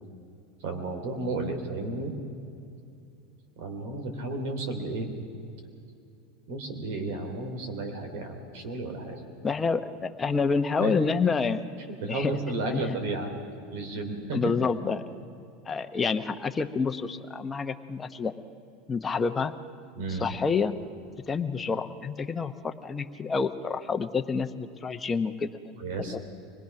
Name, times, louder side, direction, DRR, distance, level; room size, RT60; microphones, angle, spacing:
voice 1, 0.6-2.1 3.6-5.1 6.5-9.2 10.8-11.0 11.9-13.3 13.7-14.5 19.9-20.4 25.8-26.2, right 2 dB, 75° right, 4 dB, 3.2 m, -33 dB
voice 2, 9.4-11.6 12.1-12.4 12.7-13.0 14.3-15.0 15.7-18.3 18.9-19.5 20.1-20.7 21.3-25.7 26.1-26.2, left 5 dB, 20° left, 7 dB, 0.9 m, -28 dB
24.5 x 19.5 x 5.9 m, 2.6 s
supercardioid pair, 125°, 0 cm